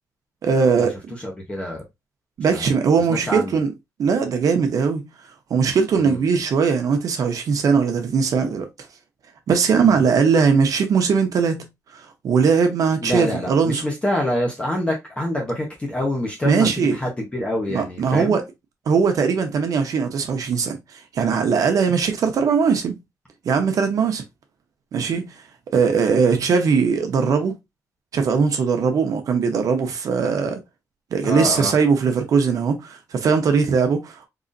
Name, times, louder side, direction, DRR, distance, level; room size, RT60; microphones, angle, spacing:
voice 1, 0.4-0.9 2.4-3.7 4.0-5.1 5.5-8.7 9.5-11.6 11.9-13.8 16.5-17.0 17.7-18.4 18.9-23.0 23.4-24.2 24.9-25.3 25.7-27.6 28.1-30.6 31.1-34.3, right 5 dB, 65° right, 0.7 m, -20 dB
voice 2, 1.2-1.8 2.5-2.7 3.1-3.6 6.0-6.2 9.8-10.0 13.0-18.4 31.2-31.7, left 1 dB, 20° left, 1.0 m, -26 dB
3.9 x 2.9 x 2.6 m
cardioid pair, 125°, 6 cm